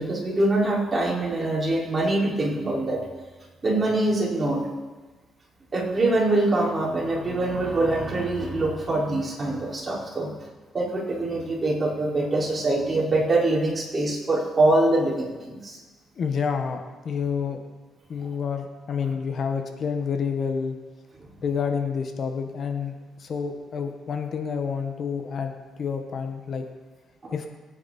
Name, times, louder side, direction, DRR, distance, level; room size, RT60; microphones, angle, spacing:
voice 1, 0.0-3.0 3.6-4.7 5.7-10.3 10.7-15.8, right 2 dB, 30° right, -5 dB, 5.3 m, -24 dB
voice 2, 16.2-17.6 18.1-20.8 21.4-22.9 23.2-25.5 25.8-26.6 27.3-27.5, left 6 dB, 55° left, 5 dB, 1.6 m, -28 dB
22.0 x 9.6 x 4.4 m, 1.3 s
cardioid pair, 90°, 0 cm